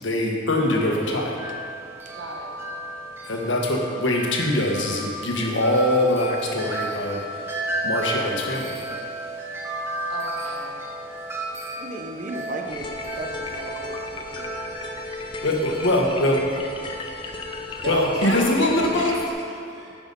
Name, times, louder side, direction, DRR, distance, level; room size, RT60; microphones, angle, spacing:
voice 1, 0.0-1.3 3.3-7.2 7.8-8.8 15.4-16.4 17.9-19.1, left 1 dB, 75° left, 0 dB, 1.3 m, -23 dB
Wind chime, 0.6-18.5, right 2 dB, 10° right, 0.8 m, -34 dB
voice 2, 2.1-2.5 10.1-10.7 17.8-20.0, right 1 dB, 65° right, -1 dB, 1.4 m, -33 dB
voice 3, 11.8-14.6, right 1 dB, 40° right, 3 dB, 0.8 m, -36 dB
sound 1, 12.7-19.3, left 3 dB, 25° left, 0.6 m, -34 dB
9.6 x 6.0 x 5.4 m, 2.4 s
head